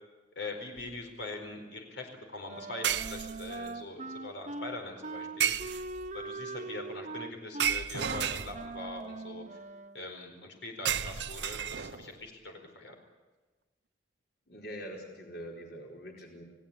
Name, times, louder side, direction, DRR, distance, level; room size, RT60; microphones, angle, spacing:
voice 1, 0.3-5.5 6.1-9.6 9.9-12.9, left 2 dB, 85° left, 3 dB, 4.6 m, -42 dB
sound 1, 0.8-1.0 2.8-3.7 5.4-6.2 7.6-8.9 10.8-12.2, right 8 dB, 75° right, 0.8 m, -32 dB
Wind instrument woodwind instrument, 2.5-10.0, right 3 dB, 40° right, 1.2 m, -41 dB
voice 2, 14.5-16.4, equal, 60° left, 0 dB, 4.5 m, -44 dB
29.0 x 17.5 x 8.8 m, 1.2 s
head